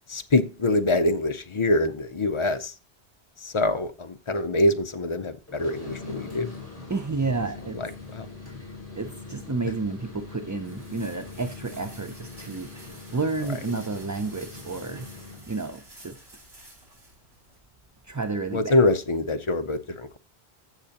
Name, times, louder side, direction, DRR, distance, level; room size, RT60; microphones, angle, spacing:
voice 1, 0.1-2.7 3.4-6.5 7.7-8.3 13.5-13.6 18.5-20.2, left 2 dB, 35° left, 0.6 m, -25 dB
sound 1, 5.5-15.5, left 3 dB, 15° left, 5.0 m, -42 dB
voice 2, 6.9-7.8 8.9-15.1 15.5-16.2 18.1-18.7, right 3 dB, 30° right, 0.3 m, -31 dB
sound 2, 9.7-17.6, right 1 dB, 75° right, 3.2 m, -50 dB
15.5 x 6.6 x 2.9 m
omnidirectional pair, 1.1 m